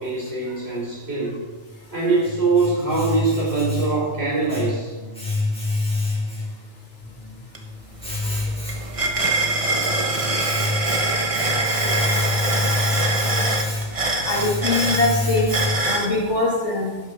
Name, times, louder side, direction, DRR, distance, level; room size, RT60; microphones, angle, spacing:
voice 1, 0.0-1.4 1.9-4.9, right 3 dB, 60° right, -5 dB, 5.3 m, -23 dB
Domestic sounds home sounds, 1.7-16.1, left 2 dB, 5° left, 2.4 m, -28 dB
sound 1, 7.5-7.6 8.0-16.1, right 2 dB, 30° right, 1.2 m, -24 dB
voice 2, 14.2-15.6 15.9-17.0, left 2 dB, 80° left, -1 dB, 2.2 m, -22 dB
11.5 x 10.0 x 5.2 m, 1.3 s
omnidirectional pair, 1.2 m